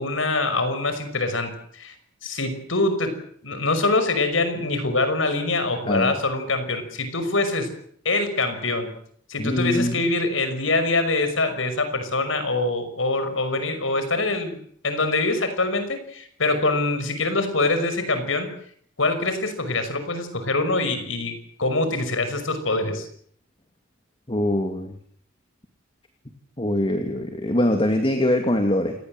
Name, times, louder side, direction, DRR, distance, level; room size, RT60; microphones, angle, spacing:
voice 1, 0.0-1.9 2.2-3.2 3.4-7.7 8.0-8.9 9.3-14.5 14.8-18.5 19.0-23.1, left 2 dB, 85° left, 9 dB, 5.9 m, -24 dB
voice 2, 9.4-10.0 24.3-25.0 26.6-28.9, left 1 dB, 30° left, 5 dB, 2.6 m, -23 dB
28.5 x 19.0 x 7.9 m, 0.63 s
head